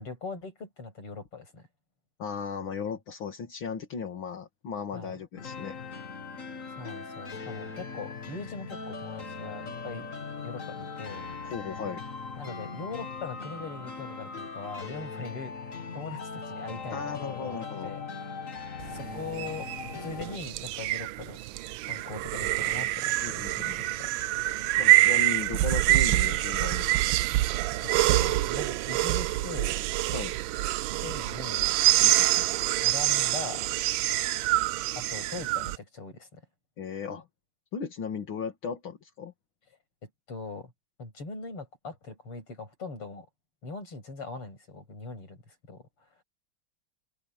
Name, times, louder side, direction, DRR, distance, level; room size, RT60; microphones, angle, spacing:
voice 1, 0.0-1.6 4.9-5.2 6.8-10.1 10.4-11.4 12.4-15.5 15.9-18.3 18.9-19.7 19.9-21.4 21.8-24.1 27.8-29.9 31.0-31.7 32.8-33.7 35.0-36.4 40.0-40.7 41.0-43.3 43.6-45.4 45.7-45.9, left 4 dB, 90° left, 8.1 m, -41 dB
voice 2, 2.2-5.8 11.5-12.0 16.9-17.9 23.2-23.8 24.8-27.0 30.1-30.4 32.0-32.5 36.8-37.3 37.7-39.3, left 6 dB, 65° left, 2.8 m, -36 dB
sound 1, 5.4-20.4, left 4 dB, 40° left, 2.2 m, -40 dB
sound 2, 18.8-35.8, right 16 dB, 75° right, 1.2 m, -26 dB
omnidirectional pair, 2.4 m